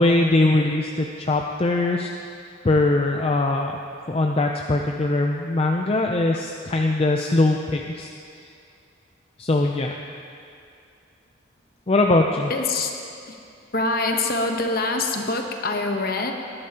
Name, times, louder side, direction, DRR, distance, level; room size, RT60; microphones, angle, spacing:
voice 1, 0.0-2.1 2.6-3.7 4.1-8.1 9.4-10.0 11.9-12.5, left 2 dB, 30° left, 1 dB, 0.4 m, -21 dB
voice 2, 12.5-12.9 13.3-13.4 13.7-16.3, left 3 dB, 50° left, 3 dB, 1.0 m, -25 dB
18.5 x 12.0 x 2.9 m, 2.5 s
head